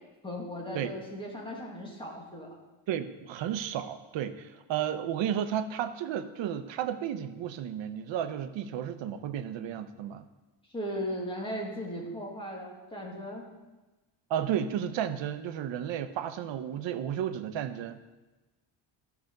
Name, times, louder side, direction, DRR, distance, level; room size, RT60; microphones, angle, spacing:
voice 1, 0.2-2.5 10.7-13.5, equal, 10° left, -2 dB, 2.0 m, -37 dB
voice 2, 2.9-10.3 14.3-18.0, right 9 dB, 70° right, 10 dB, 0.8 m, -33 dB
12.5 x 5.9 x 6.5 m, 1.1 s
cardioid pair, 175°, 46 cm